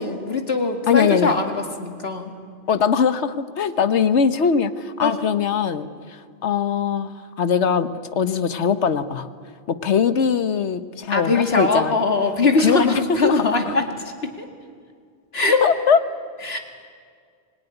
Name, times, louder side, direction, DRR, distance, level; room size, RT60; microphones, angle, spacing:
voice 1, 0.0-2.3 5.0-5.3 11.1-14.5 15.3-15.7 16.4-16.6, left 3 dB, 65° left, 5 dB, 2.5 m, -22 dB
voice 2, 0.9-1.3 2.7-5.9 6.4-7.1 7.4-9.3 9.7-11.9 12.6-13.4 15.6-16.0, left 6 dB, 85° left, 12 dB, 1.3 m, -21 dB
25.5 x 19.5 x 10.0 m, 2.1 s
omnidirectional pair, 1.1 m